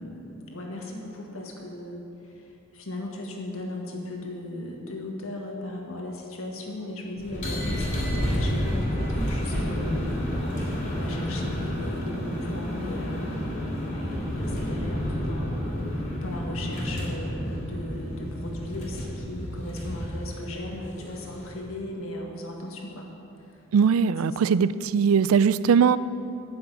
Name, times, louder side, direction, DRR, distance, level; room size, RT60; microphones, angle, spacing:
voice 1, 0.0-2.4 2.7-10.1 10.9-23.1 24.2-24.7, left 1 dB, 75° left, 0 dB, 1.8 m, -37 dB
sound 1, 7.2-21.6, equal, 35° left, 3.1 m, -30 dB
voice 2, 23.7-26.0, right 6 dB, 80° right, 16 dB, 0.4 m, -20 dB
10.0 x 7.0 x 8.4 m, 2.7 s
head